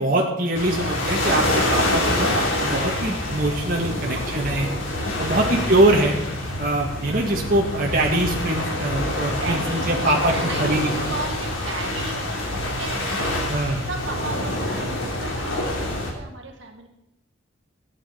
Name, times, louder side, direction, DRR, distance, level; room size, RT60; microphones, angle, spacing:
voice 1, 0.0-1.4 1.7-4.7 5.2-6.2 6.6-10.3 10.6-10.9 13.5-13.8, right 1 dB, 45° right, -1 dB, 1.6 m, -23 dB
sound 1, 0.5-16.1, left 1 dB, 80° left, 2.9 m, -26 dB
voice 2, 4.0-4.7 7.1-7.2 8.6-8.8 9.3-10.8 11.1-16.9, right 3 dB, 65° right, 3 dB, 1.7 m, -36 dB
13.5 x 8.9 x 5.6 m, 0.84 s
head